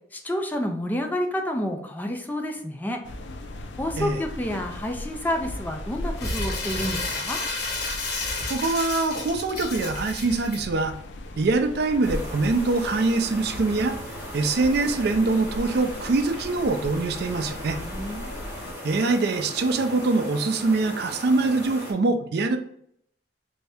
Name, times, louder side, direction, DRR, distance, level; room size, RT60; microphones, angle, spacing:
voice 1, 0.1-3.0 3.8-7.4 17.8-18.6, left 1 dB, 10° left, 3 dB, 0.3 m, -29 dB
sound 1, 3.0-18.7, left 1 dB, 75° left, 0.5 m, -38 dB
Crumpling crinkling, 6.2-10.6, left 3 dB, 60° left, 0.9 m, -31 dB
voice 2, 8.5-10.9 11.4-14.0 14.3-17.8 18.8-22.6, right 3 dB, 60° right, 7 dB, 0.4 m, -24 dB
sound 2, 12.0-21.9, equal, 10° right, 1.0 m, -38 dB
3.3 x 2.6 x 3.4 m, 0.70 s
head